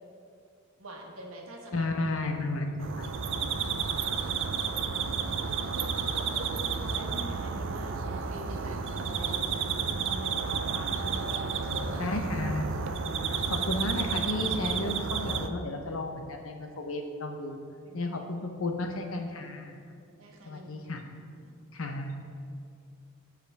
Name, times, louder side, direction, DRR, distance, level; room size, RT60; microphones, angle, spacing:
voice 1, 0.8-1.9 5.7-9.7 10.1-12.2 17.9-18.1 20.2-20.7 21.3-21.5, equal, 75° right, 0 dB, 1.4 m, -44 dB
voice 2, 1.7-3.1 12.0-12.8 13.5-17.6 17.9-19.8 20.5-21.0 21.7-22.2, left 2 dB, 70° left, 4 dB, 0.9 m, -33 dB
sound 1, 2.8-15.5, right 5 dB, 60° right, 0.5 m, -31 dB
14.5 x 5.0 x 3.4 m, 2.3 s
head